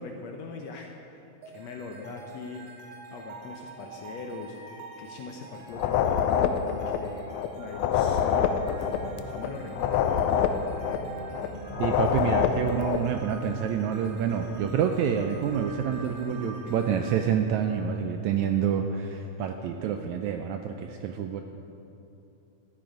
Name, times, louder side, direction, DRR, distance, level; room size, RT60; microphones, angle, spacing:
voice 1, 0.0-2.7 3.1-7.3 7.6-10.1, left 4 dB, 70° left, 2 dB, 1.7 m, -41 dB
sound 1, 1.4-18.6, right 4 dB, 65° right, 1.4 m, -47 dB
sound 2, 5.7-7.5 7.7-11.5 11.7-13.1, left 8 dB, 85° left, 1.5 m, -26 dB
sound 3, 8.6-18.0, equal, 40° left, 2.4 m, -43 dB
voice 2, 11.8-21.4, right 8 dB, 80° right, 5 dB, 1.7 m, -28 dB
13.5 x 12.0 x 5.2 m, 2.8 s
omnidirectional pair, 3.8 m